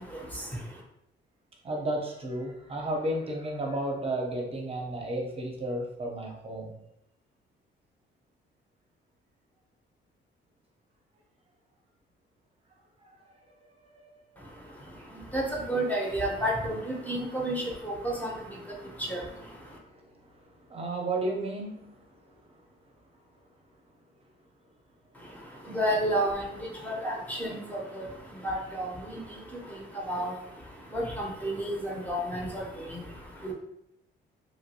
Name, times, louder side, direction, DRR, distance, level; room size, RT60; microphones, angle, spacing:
voice 1, 1.6-6.7 13.8-14.1 19.9-22.1, right 1 dB, 30° right, 0 dB, 0.7 m, -33 dB
voice 2, 15.3-16.8 17.1-18.3 19.1-19.2 25.7-26.4 26.8-27.8 28.4-28.9 30.1-30.3 30.9-31.8 32.1-32.6 33.4-33.5, right 1 dB, 10° left, -3 dB, 0.8 m, -30 dB
3.0 x 2.5 x 2.8 m, 0.80 s
cardioid pair, 90°, 20 cm